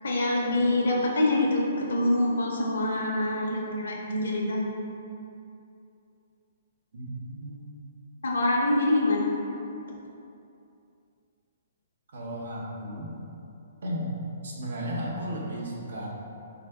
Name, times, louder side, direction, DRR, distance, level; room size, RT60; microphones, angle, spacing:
voice 1, 0.0-4.6 8.2-9.3, left 1 dB, 80° left, -2 dB, 0.6 m, -25 dB
voice 2, 6.9-7.6 12.1-13.1 13.8-14.1 14.4-16.1, equal, 70° right, -2 dB, 0.6 m, -34 dB
3.4 x 2.1 x 3.2 m, 2.7 s
hypercardioid pair, 175°, 0 cm